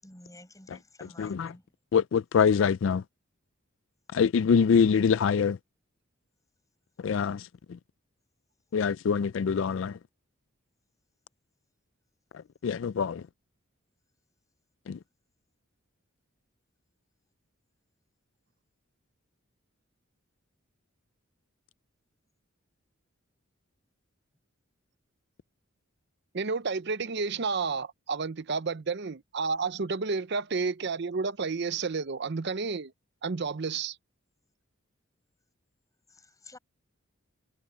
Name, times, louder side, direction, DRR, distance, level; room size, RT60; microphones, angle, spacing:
voice 1, 0.0-1.6 36.1-36.6, left 2 dB, 15° left, 5.7 m, -51 dB
voice 2, 1.2-1.5 1.9-3.0 4.1-5.6 7.0-7.8 8.7-10.0 12.6-13.2 14.9-15.0, left 6 dB, 60° left, 0.3 m, -24 dB
voice 3, 26.3-32.9 33.2-34.0, right 4 dB, 55° right, 0.6 m, -31 dB
head